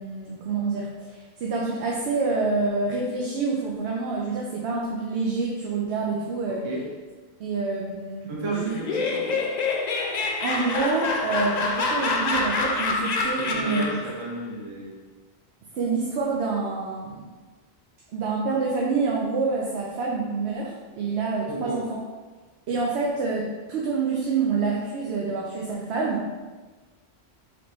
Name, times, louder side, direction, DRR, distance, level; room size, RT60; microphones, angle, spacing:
voice 1, 0.0-6.7 7.4-8.7 10.4-14.0 15.7-17.2 18.1-22.0 22.7-26.3, right 4 dB, 90° right, -2 dB, 0.9 m, -27 dB
voice 2, 8.3-9.4 13.4-14.9 21.5-21.8, right 1 dB, 35° right, -1 dB, 0.5 m, -33 dB
Laughter, 8.7-14.1, left 3 dB, 55° left, 0.5 m, -26 dB
4.1 x 3.0 x 3.1 m, 1.3 s
omnidirectional pair, 1.1 m